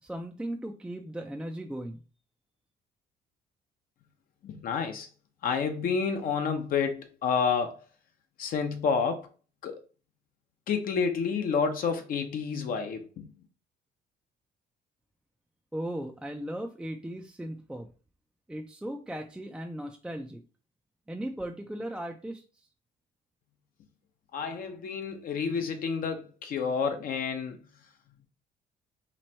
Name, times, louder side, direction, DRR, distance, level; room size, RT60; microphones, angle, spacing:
voice 1, 0.0-2.0 15.7-17.9 18.5-20.4 21.1-22.7, right 1 dB, 5° right, 0.3 m, -37 dB
voice 2, 4.4-5.1 5.4-7.8 8.4-9.3 9.6-9.8 10.7-13.3 24.3-27.6, left 6 dB, 55° left, 0.7 m, -29 dB
3.0 x 2.6 x 4.2 m
cardioid pair, 110°, 17 cm